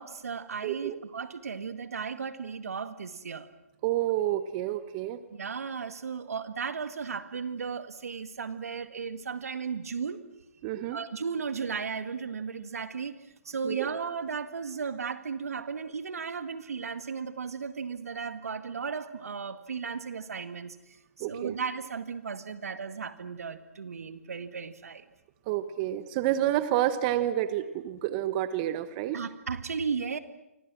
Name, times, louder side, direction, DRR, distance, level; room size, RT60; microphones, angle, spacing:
voice 1, 0.0-3.5 5.3-10.2 10.9-13.1 13.5-20.8 21.3-25.0 29.1-30.2, right 5 dB, 75° right, 11 dB, 2.0 m, -35 dB
voice 2, 0.6-1.0 3.8-5.2 10.6-11.0 13.6-13.9 21.2-21.6 25.5-29.2, right 13 dB, 35° right, 12 dB, 1.3 m, -29 dB
29.5 x 25.0 x 6.3 m, 0.90 s
hypercardioid pair, 140°, 8 cm